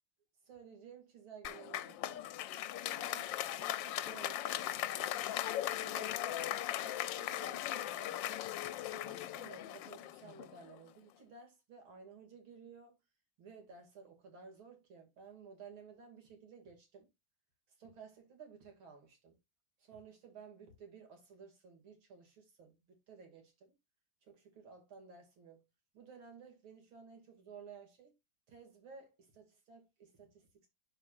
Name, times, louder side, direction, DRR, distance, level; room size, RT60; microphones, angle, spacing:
voice 1, 0.4-2.3 2.7-5.2 5.6-8.4 8.9-13.0 13.4-17.1 17.8-19.4 19.8-23.7 24.2-25.6 25.9-28.1 28.5-30.7, right 5 dB, 85° right, 3.2 m, -55 dB
Applause, 1.4-10.8, left 13 dB, 75° left, 1.2 m, -39 dB
11.5 x 4.9 x 2.5 m
omnidirectional pair, 2.2 m